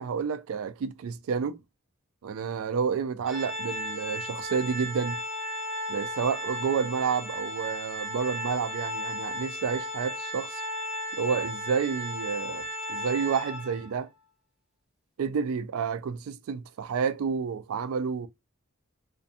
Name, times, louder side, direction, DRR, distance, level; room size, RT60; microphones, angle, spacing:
voice 1, 0.0-1.6 2.2-5.2 5.9-10.6 11.2-14.1 15.2-18.3, right 6 dB, 70° right, 0.3 m, -30 dB
Organ, 3.3-14.0, equal, ahead, 0.5 m, -35 dB
2.5 x 2.2 x 2.7 m
head